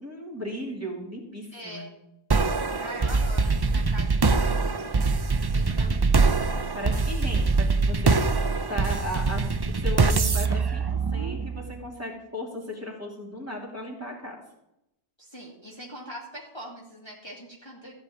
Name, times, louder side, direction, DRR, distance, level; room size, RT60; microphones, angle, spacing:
voice 1, 0.0-1.9 6.7-9.4 9.7-10.8 11.1-14.4, left 1 dB, 10° right, -2 dB, 2.9 m, -36 dB
voice 2, 1.5-1.9 2.8-5.1 5.5-6.3 15.2-17.9, equal, 20° left, -4 dB, 2.3 m, -42 dB
sound 1, 2.3-11.7, right 4 dB, 40° right, 0.3 m, -23 dB
15.0 x 5.1 x 8.8 m, 0.86 s
omnidirectional pair, 1.2 m